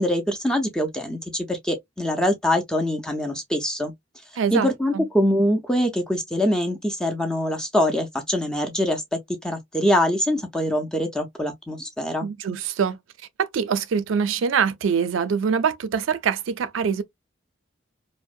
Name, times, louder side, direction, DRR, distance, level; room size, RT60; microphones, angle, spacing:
voice 1, 0.0-3.9 4.5-12.3, equal, 5° left, 0.4 m, -24 dB
voice 2, 4.4-5.1 12.2-13.0 13.4-17.0, right 6 dB, 85° right, 0.4 m, -24 dB
2.6 x 2.0 x 2.3 m
head